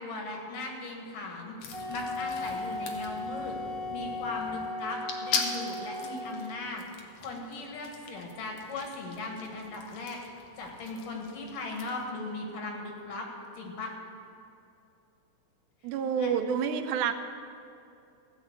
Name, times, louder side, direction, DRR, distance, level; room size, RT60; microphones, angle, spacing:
voice 1, 0.0-1.5 1.9-3.5 3.9-6.8 7.2-10.2 10.6-13.3 13.6-13.9 16.2-16.3, left 2 dB, 90° left, 1 dB, 3.4 m, -38 dB
sound 1, 1.6-12.1, left 5 dB, 65° left, 2.1 m, -40 dB
Wind instrument woodwind instrument, 1.7-6.6, left 2 dB, 30° left, 1.7 m, -37 dB
voice 2, 15.8-17.1, right 7 dB, 80° right, 8 dB, 2.0 m, -28 dB
15.5 x 6.3 x 8.1 m, 2.6 s
omnidirectional pair, 3.7 m